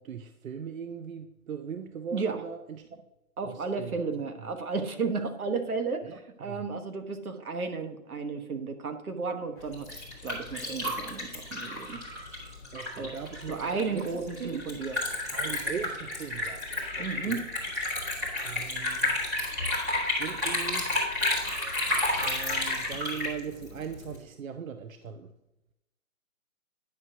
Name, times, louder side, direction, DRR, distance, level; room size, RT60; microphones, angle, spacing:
voice 1, 0.0-3.0 3.4-4.0 6.0-6.6 12.7-14.1 14.4-14.6 15.3-17.5 18.4-19.2 20.2-21.1 22.2-25.3, right 7 dB, 70° right, 8 dB, 0.6 m, -39 dB
voice 2, 3.4-9.9 10.2-12.0 13.0-13.1 13.5-15.0 17.0-17.4, right 4 dB, 90° right, 7 dB, 1.3 m, -33 dB
Liquid, 9.6-24.2, left 2 dB, 10° right, 1.2 m, -31 dB
9.7 x 6.3 x 2.8 m, 0.93 s
hypercardioid pair, 180°, 42 cm